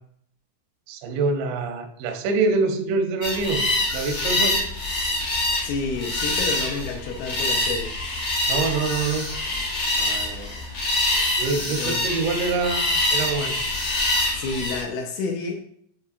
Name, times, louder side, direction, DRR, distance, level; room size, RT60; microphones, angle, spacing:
voice 1, 0.9-3.7 3.9-4.7 8.5-9.3 10.0-10.6 11.3-13.6, right 4 dB, 85° right, 4 dB, 2.4 m, -25 dB
sound 1, 3.2-14.8, left 2 dB, 70° left, 1.6 m, -25 dB
voice 2, 5.6-8.0 11.7-12.1 14.3-15.6, left 4 dB, 90° left, 1 dB, 3.1 m, -30 dB
7.2 x 2.8 x 2.4 m, 0.63 s
omnidirectional pair, 5.6 m